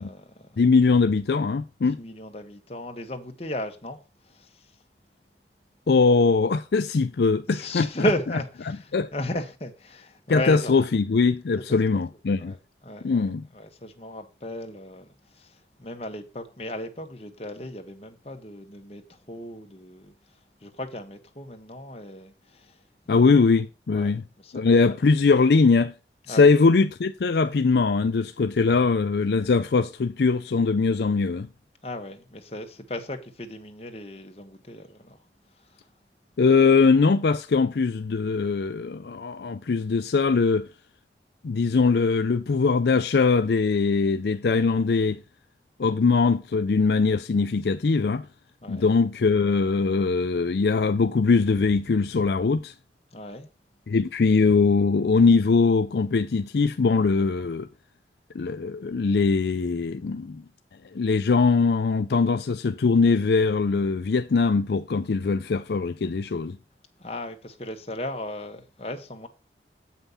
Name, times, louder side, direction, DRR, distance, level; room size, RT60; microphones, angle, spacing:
voice 1, 0.0-0.5 1.8-4.7 7.5-10.7 11.7-11.8 12.4-12.6 12.8-13.3 13.5-20.1 20.6-23.2 23.9-24.6 24.9-25.0 26.3-26.5 31.8-35.2 35.6-35.9 48.6-48.9 53.1-53.5 67.0-69.3, left 1 dB, 35° left, 1.3 m, -35 dB
voice 2, 0.6-2.0 5.9-7.9 8.9-9.1 10.3-12.5 13.0-13.4 23.1-24.2 24.5-25.9 26.3-31.5 36.4-40.7 41.4-45.2 45.8-48.3 48.7-52.7 53.9-57.7 58.3-60.4 60.9-66.6, left 4 dB, 70° left, 0.4 m, -21 dB
8.2 x 5.7 x 5.6 m
head